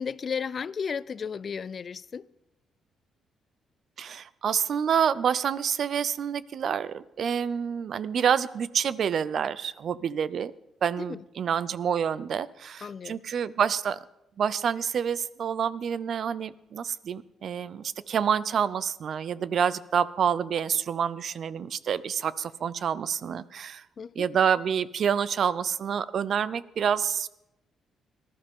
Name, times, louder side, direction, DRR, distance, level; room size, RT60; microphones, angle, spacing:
voice 1, 0.0-2.3 11.0-11.2 12.8-13.2 24.0-24.3, left 6 dB, 45° left, 0.4 m, -34 dB
voice 2, 4.0-10.5 10.8-14.0 14.4-23.8 24.2-27.3, right 7 dB, 60° right, 0.5 m, -28 dB
19.0 x 12.0 x 3.6 m
cardioid pair, 90°, 0 cm